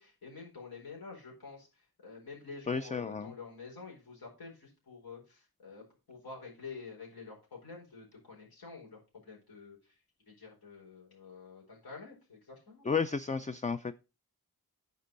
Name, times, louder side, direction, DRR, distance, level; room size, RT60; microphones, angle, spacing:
voice 1, 0.0-1.7 2.0-9.8 10.3-12.9, left 4 dB, 70° left, -2 dB, 4.7 m, -48 dB
voice 2, 2.7-3.3 12.8-13.9, left 5 dB, 20° left, 11 dB, 0.4 m, -32 dB
9.7 x 5.4 x 5.2 m, 0.31 s
wide cardioid pair, 95°, 38 cm